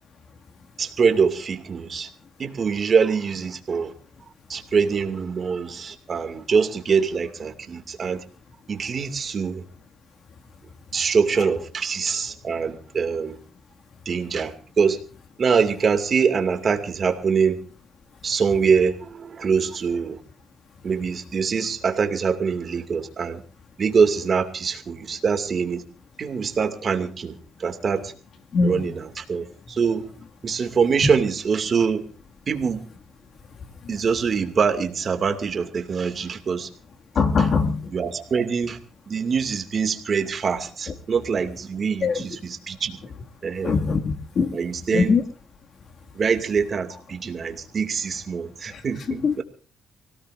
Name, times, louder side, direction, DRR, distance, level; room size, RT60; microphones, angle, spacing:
voice 1, 0.8-2.1 2.4-3.9 4.5-8.2 8.7-9.6 10.9-13.4 14.1-15.0 15.4-17.6 18.2-20.2 20.8-23.4 23.8-25.8 26.2-27.3 27.6-28.1 28.6-30.1 30.4-32.0 32.5-32.8 33.9-36.7 37.4-37.5 37.9-38.8 39.1-43.0 43.4-43.8 44.5-45.2 46.2-49.4, right 6 dB, 45° right, 7 dB, 2.5 m, -24 dB
voice 2, 28.5-28.9 31.0-31.1 33.9-34.0 37.2-37.8 42.0-42.2 43.6-44.6 44.9-45.2 48.7-48.8 49.2-49.4, left 5 dB, 55° left, 5 dB, 2.3 m, -21 dB
24.5 x 18.0 x 2.7 m, 0.39 s
cardioid pair, 90°, 0 cm